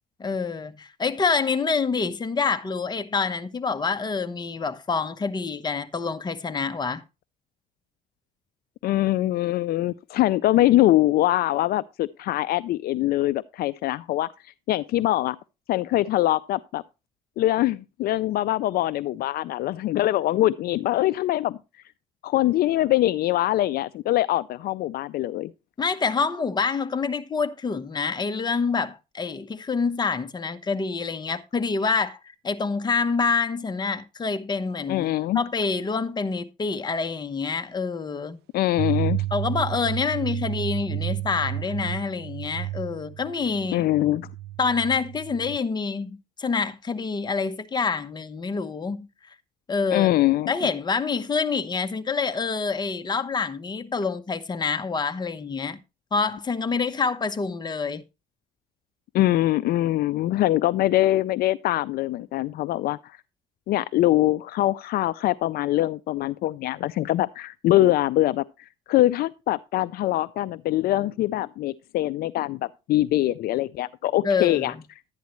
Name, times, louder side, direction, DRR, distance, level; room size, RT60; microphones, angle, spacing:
voice 1, 0.2-7.0 25.8-32.2 32.4-38.4 39.3-43.9 44.6-49.1 49.7-50.1 50.5-55.8 56.1-58.0 74.2-74.8, left 5 dB, 25° left, 1.0 m, -27 dB
voice 2, 8.8-14.3 14.7-15.4 15.7-16.8 17.4-21.6 22.2-25.5 34.9-35.4 38.5-39.2 43.7-44.3 49.9-50.5 59.1-63.2 63.7-68.4 68.9-74.7, left 15 dB, 65° left, 0.4 m, -23 dB
sound 1, 38.8-45.6, right 14 dB, 75° right, 0.4 m, -31 dB
11.5 x 9.3 x 3.0 m
cardioid pair, 110°, 17 cm